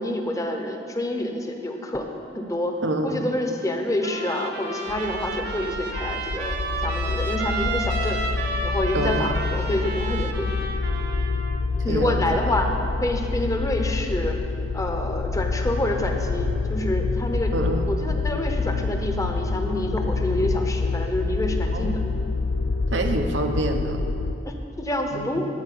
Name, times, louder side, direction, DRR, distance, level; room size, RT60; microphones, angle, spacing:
voice 1, 0.0-2.1 2.3-2.7 3.0-6.5 6.8-8.2 8.6-10.6 11.8-12.7 13.0-14.4 14.7-17.5 17.9-22.0 24.4-25.5, left 1 dB, 20° left, 3 dB, 0.9 m, -27 dB
voice 2, 2.8-3.2 8.9-9.3 11.9-12.5 17.5-17.9 21.7-21.9 22.9-24.0 25.1-25.3, right 2 dB, 90° right, 4 dB, 1.0 m, -27 dB
Trumpet, 4.0-11.6, right 3 dB, 60° right, 1.0 m, -31 dB
sound 1, 4.9-24.3, left 4 dB, 90° left, 0.5 m, -27 dB
12.5 x 4.8 x 8.2 m, 2.7 s
head